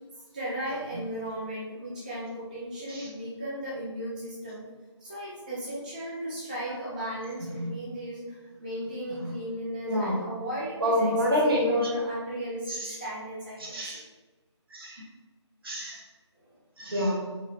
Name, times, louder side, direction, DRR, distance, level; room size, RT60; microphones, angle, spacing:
voice 1, 0.3-4.6 5.0-14.0, right 1 dB, 15° right, -8 dB, 0.4 m, -36 dB
voice 2, 9.9-10.2 10.8-11.9 12.7-12.9 13.7-14.0 14.7-15.0 15.6-16.0 16.8-17.2, equal, 50° right, -3 dB, 1.2 m, -27 dB
4.3 x 2.9 x 2.7 m, 1.3 s
figure-of-eight pair, 155°, 15 cm